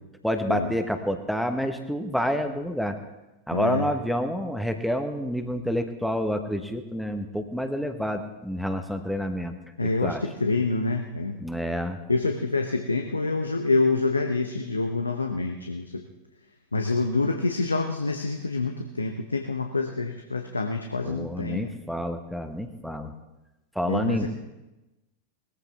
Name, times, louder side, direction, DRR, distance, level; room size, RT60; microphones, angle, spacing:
voice 1, 0.2-3.0 3.5-9.5 9.8-10.2 11.4-12.0 21.0-23.1 23.7-24.3, equal, ahead, 7 dB, 1.3 m, -28 dB
voice 2, 3.5-3.9 9.8-11.4 12.1-16.0 16.7-21.7 23.9-24.3, left 3 dB, 80° left, 4 dB, 0.9 m, -26 dB
20.0 x 14.5 x 3.6 m, 1.0 s
figure-of-eight pair, 90°, 0 cm